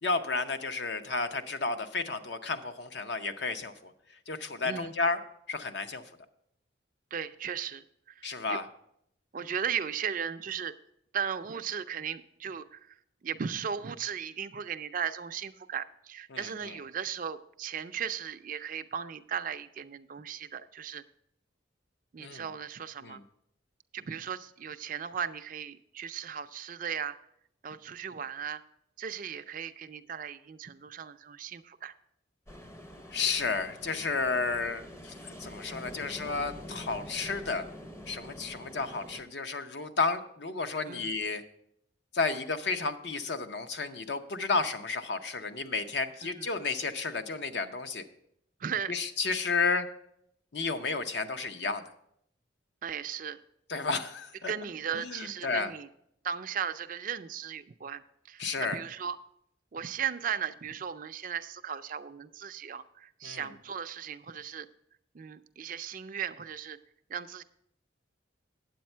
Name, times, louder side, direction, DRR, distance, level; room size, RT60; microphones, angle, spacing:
voice 1, 0.0-3.9 4.3-5.2 5.5-6.0 8.2-8.6 16.3-16.5 22.2-22.5 23.0-23.2 33.1-37.6 38.1-41.4 42.1-48.0 48.9-49.9 50.5-51.8 53.7-54.5 54.9-55.7 58.4-58.8 63.2-63.5, left 4 dB, 60° left, 8 dB, 0.7 m, -32 dB
voice 2, 7.1-8.6 9.3-10.7 11.1-21.0 22.1-23.2 23.9-27.2 27.6-28.6 29.0-32.0 40.9-41.1 46.3-46.5 48.6-48.9 52.8-53.4 54.5-55.9 56.2-59.2 59.7-64.7 65.1-66.8 67.1-67.4, right 8 dB, 45° right, 10 dB, 0.4 m, -37 dB
Ocean, 32.5-39.2, equal, 15° left, 0.6 m, -46 dB
9.3 x 8.0 x 4.4 m, 0.74 s
head